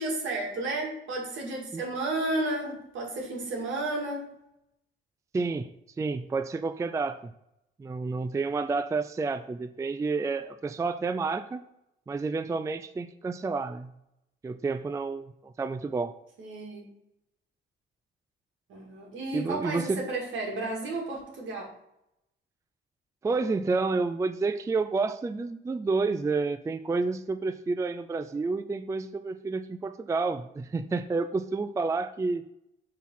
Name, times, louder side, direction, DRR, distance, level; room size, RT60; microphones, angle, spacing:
voice 1, 0.0-4.3 16.4-16.8 18.7-21.7, right 2 dB, 75° right, -1 dB, 2.3 m, -32 dB
voice 2, 5.3-5.7 6.0-7.3 7.8-11.6 12.1-13.9 14.4-16.1 19.3-20.0 23.2-32.4, right 4 dB, 15° right, 11 dB, 0.3 m, -30 dB
6.2 x 4.3 x 5.5 m, 0.82 s
cardioid pair, 90°, 20 cm